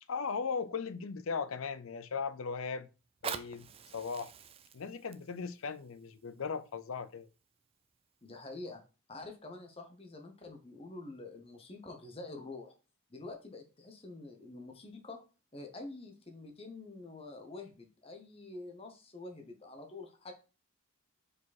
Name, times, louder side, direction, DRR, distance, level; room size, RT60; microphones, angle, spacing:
voice 1, 0.1-2.9 3.2-4.3 4.7-7.3, left 5 dB, 75° left, 0.5 m, -38 dB
Fire, 3.0-7.9 8.6-8.7, right 7 dB, 25° right, 0.3 m, -46 dB
voice 2, 8.2-8.8 9.1-12.7 13.1-15.2 15.5-20.3, left 2 dB, 25° left, 0.9 m, -47 dB
5.0 x 4.7 x 4.1 m
head